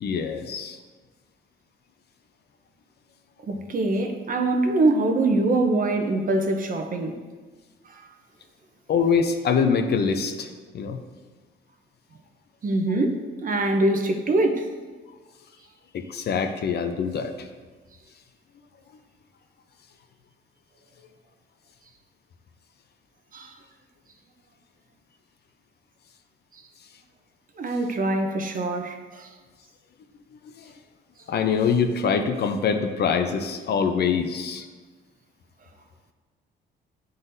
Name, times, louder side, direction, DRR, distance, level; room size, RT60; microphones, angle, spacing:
voice 1, 0.0-0.8 8.9-11.0 15.9-17.5 30.6-30.7 31.3-34.7, left 6 dB, 55° left, 7 dB, 0.6 m, -24 dB
voice 2, 3.5-7.2 7.9-8.0 12.6-14.6 23.3-23.5 27.6-29.3, right 2 dB, 45° right, 5 dB, 0.8 m, -24 dB
9.2 x 4.0 x 2.7 m, 1.4 s
cardioid pair, 90°, 20 cm